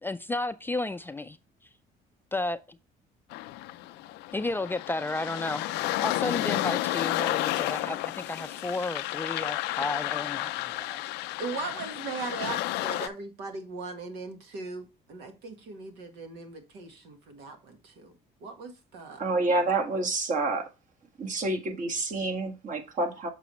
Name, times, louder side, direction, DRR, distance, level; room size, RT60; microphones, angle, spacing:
voice 1, 0.0-1.4 2.3-2.8 4.3-5.7 6.0-11.0, left 2 dB, 10° left, 0.4 m, -33 dB
sound 1, 3.3-13.1, left 17 dB, 85° left, 0.4 m, -31 dB
voice 2, 11.4-18.1 18.4-19.2, right 4 dB, 85° right, 1.4 m, -39 dB
voice 3, 19.2-20.7 21.2-23.3, right 2 dB, 50° right, 1.7 m, -28 dB
6.8 x 6.1 x 3.0 m
cardioid pair, 110°, 17 cm